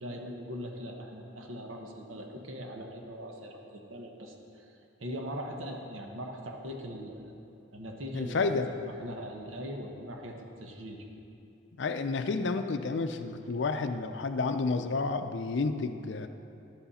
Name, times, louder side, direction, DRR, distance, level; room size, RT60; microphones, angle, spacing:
voice 1, 0.0-4.7 5.0-7.3 7.7-8.5 8.8-11.1, equal, 75° right, 2 dB, 1.1 m, -41 dB
voice 2, 8.1-8.7 11.8-16.3, left 3 dB, 60° left, 8 dB, 0.5 m, -30 dB
10.5 x 8.0 x 4.2 m, 2.7 s
head